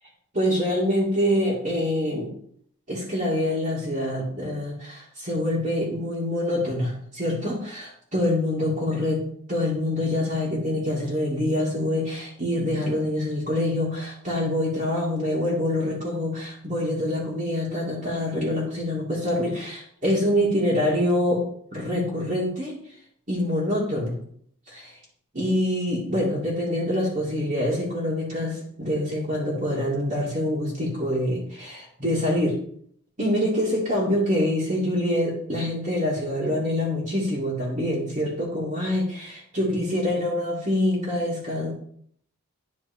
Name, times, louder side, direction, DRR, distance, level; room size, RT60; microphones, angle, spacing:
voice 1, 0.3-2.3 2.9-9.2 9.5-21.4 21.7-22.7 23.3-24.2 24.7-25.0 25.3-32.6 33.2-41.7, left 1 dB, 40° right, -8 dB, 2.4 m, -25 dB
11.0 x 4.6 x 4.4 m, 0.64 s
head